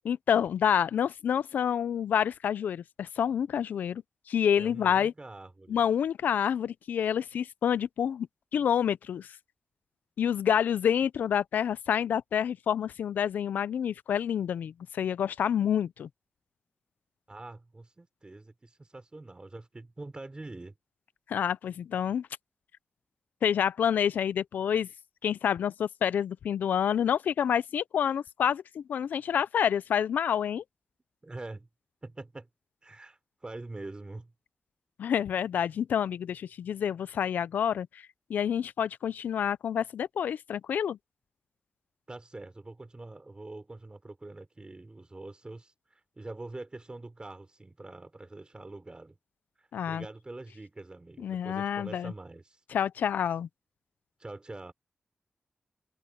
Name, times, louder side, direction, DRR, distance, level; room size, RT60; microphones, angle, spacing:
voice 1, 0.0-4.0 4.3-5.1 5.7-8.3 8.5-9.3 10.2-16.1 21.3-22.3 23.4-24.9 25.2-30.6 35.0-38.0 38.3-41.0 49.7-50.0 51.2-52.1 52.7-53.5, left 8 dB, 90° left, 0.5 m, -28 dB
voice 2, 4.6-5.8 17.3-20.7 31.2-31.7 32.0-32.5 32.8-34.3 42.1-49.2 49.6-52.6 54.2-54.7, right 2 dB, 30° right, 4.2 m, -44 dB
cardioid pair, 45°, 3 cm